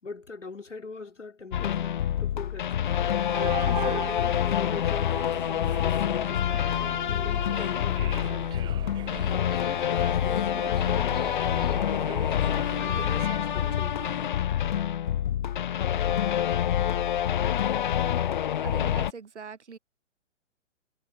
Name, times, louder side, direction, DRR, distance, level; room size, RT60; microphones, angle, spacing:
voice 1, 0.0-3.0 3.6-6.7 7.1-8.8 9.4-12.4 12.8-14.0 14.4-14.5, left 4 dB, 75° left, 3.7 m, -42 dB
sound 1, 1.5-19.1, left 10 dB, 40° left, 0.5 m, -27 dB
sound 2, 2.8-14.3, right 13 dB, 10° right, 0.9 m, -41 dB
voice 2, 18.6-19.8, right 5 dB, 70° right, 1.1 m, -42 dB
figure-of-eight pair, 120°, 37 cm